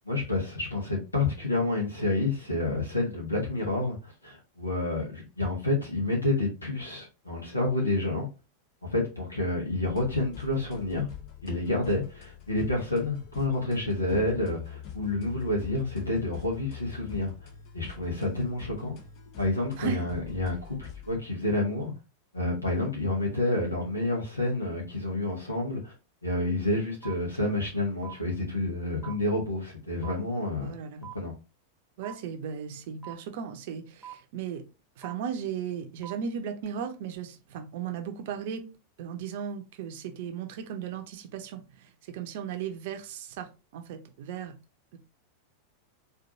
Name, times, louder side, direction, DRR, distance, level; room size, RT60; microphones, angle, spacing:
voice 1, 0.1-8.3 8.9-11.1 11.4-17.3 17.7-19.0 19.4-21.9 22.3-25.9 26.2-30.8 31.1-31.3, left 2 dB, 80° left, 0.9 m, -29 dB
sound 1, 9.8-21.2, left 9 dB, 45° left, 0.8 m, -44 dB
sound 2, 27.0-27.1 28.0-28.1 29.0-29.1 30.0-30.1 31.0-31.1 32.0-32.1 33.0-33.1 34.0-34.1 35.0-35.1 36.0-36.1, right 11 dB, 5° right, 0.5 m, -41 dB
voice 2, 30.6-31.1 32.0-34.6 35.0-38.6 39.0-44.6 44.9-45.0, right 8 dB, 50° right, 0.6 m, -36 dB
4.4 x 2.6 x 2.6 m
figure-of-eight pair, 90°, 0 cm